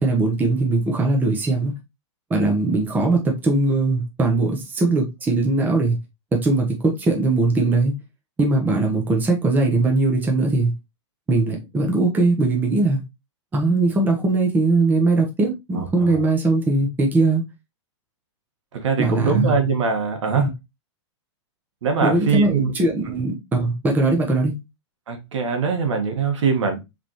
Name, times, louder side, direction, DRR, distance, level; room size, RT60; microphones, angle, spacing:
voice 1, 0.0-1.7 2.3-6.0 6.3-7.9 8.4-10.7 11.3-13.0 13.5-17.4 19.0-19.5 20.3-20.5 22.0-24.5, right 2 dB, 10° right, 1.0 m, -20 dB
voice 2, 15.8-16.2 18.8-20.5 21.8-22.7 25.1-26.8, right 5 dB, 75° right, 1.6 m, -22 dB
4.9 x 3.6 x 3.0 m
hypercardioid pair, 150°, 16 cm